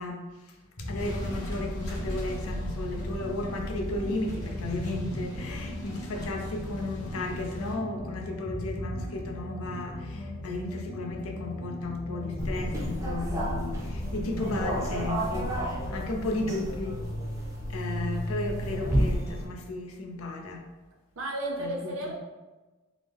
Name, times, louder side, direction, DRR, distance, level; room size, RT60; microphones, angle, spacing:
voice 1, 0.0-17.0 17.7-20.6 21.6-22.1, left 2 dB, 70° left, 1 dB, 0.5 m, -34 dB
sound 1, 0.8-16.1, left 1 dB, 45° left, 0.8 m, -38 dB
sound 2, 1.0-7.8, equal, 90° left, 1.3 m, -39 dB
sound 3, 12.4-19.4, equal, 15° right, 0.5 m, -31 dB
voice 2, 21.2-22.1, right 1 dB, 65° right, 0 dB, 0.7 m, -33 dB
3.7 x 2.0 x 3.4 m, 1.2 s
head